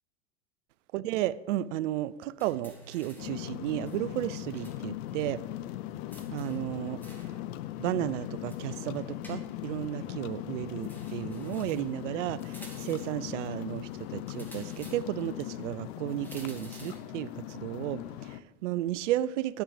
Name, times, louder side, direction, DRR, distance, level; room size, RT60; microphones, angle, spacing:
voice 1, 0.9-5.4 6.3-7.0 7.8-19.6, right 14 dB, 70° right, 0.6 m, -33 dB
sound 1, 2.4-3.4 3.9-4.8 5.1-5.2 6.1-7.4 8.5-9.8 10.8-11.9 12.4-13.2 14.3-15.3 16.2-17.1, right 1 dB, 5° left, 2.3 m, -50 dB
sound 2, 3.2-18.4, left 13 dB, 55° left, 0.6 m, -39 dB
10.5 x 7.4 x 5.0 m
hypercardioid pair, 105°, 38 cm